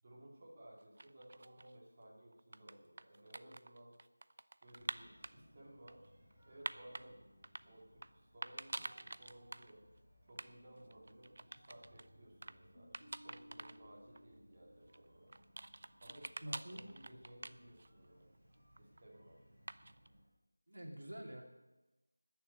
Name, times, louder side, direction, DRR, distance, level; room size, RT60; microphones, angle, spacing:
voice 1, 0.0-4.0 4.6-6.1 6.5-7.2 7.6-9.8 10.3-15.3 16.0-18.4 18.8-19.5, right 1 dB, 25° right, -5 dB, 2.6 m, -58 dB
sound 1, 0.8-1.7 2.3-5.3 5.9-7.1 7.4-8.1 8.4-9.7 10.0-10.1 10.3-10.5 10.8-12.1 12.4-12.6 12.9-13.8 14.1-14.2 14.9-18.1 18.3-19.0 19.7-20.1, right 2 dB, 45° right, 0.4 m, -47 dB
sound 2, 4.8-20.2, equal, 10° right, 4.1 m, -65 dB
voice 2, 16.4-16.8 20.7-21.4, equal, 65° right, 1 dB, 2.5 m, -47 dB
19.5 x 7.0 x 6.6 m, 1.1 s
figure-of-eight pair, 175°, 0 cm